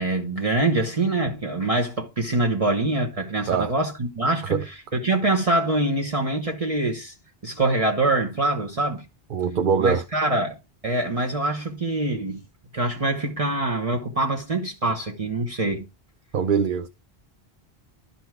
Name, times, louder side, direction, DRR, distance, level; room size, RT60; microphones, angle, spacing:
voice 1, 0.0-7.1 7.4-9.0 9.8-10.6 10.8-12.4 12.7-15.9, right 2 dB, 35° right, 1.1 m, -24 dB
voice 2, 9.3-10.0 16.3-16.9, right 6 dB, 60° right, 0.8 m, -22 dB
11.5 x 4.2 x 4.6 m
omnidirectional pair, 1.0 m